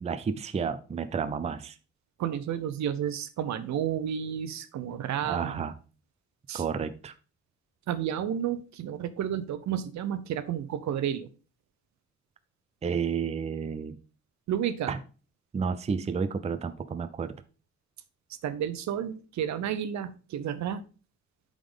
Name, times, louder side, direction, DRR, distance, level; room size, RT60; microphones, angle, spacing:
voice 1, 0.0-1.8 5.2-5.7 6.5-7.1 12.8-14.0 14.9-15.0 15.5-17.3, right 6 dB, 20° right, 11 dB, 0.5 m, -31 dB
voice 2, 2.2-5.6 6.5-6.6 7.9-11.3 14.5-14.9 18.4-20.8, right 9 dB, 65° right, 13 dB, 0.7 m, -31 dB
8.6 x 3.8 x 3.6 m, 0.36 s
cardioid pair, 90°, 30 cm